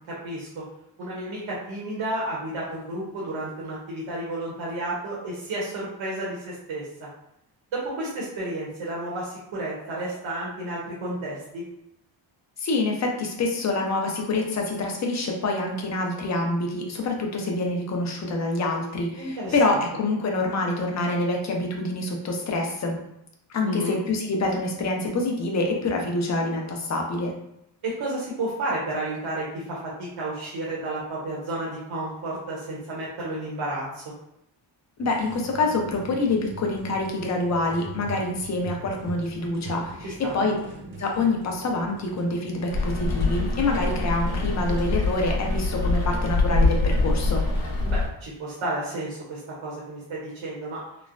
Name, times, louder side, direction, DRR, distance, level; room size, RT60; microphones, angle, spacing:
voice 1, 0.1-0.6 1.0-7.1 7.7-11.6 19.2-19.8 23.6-23.9 27.8-34.0 40.0-40.3 47.8-50.8, right 1 dB, 75° right, -6 dB, 0.9 m, -32 dB
voice 2, 12.6-23.0 23.5-27.3 35.0-40.5 41.0-47.4, left 2 dB, 35° left, 1 dB, 0.6 m, -26 dB
sound 1, 35.0-44.9, right 3 dB, 45° right, 0.7 m, -41 dB
Rain, 42.7-48.1, left 2 dB, 75° left, 0.8 m, -24 dB
3.1 x 2.0 x 2.5 m, 0.79 s
cardioid pair, 120°, 47 cm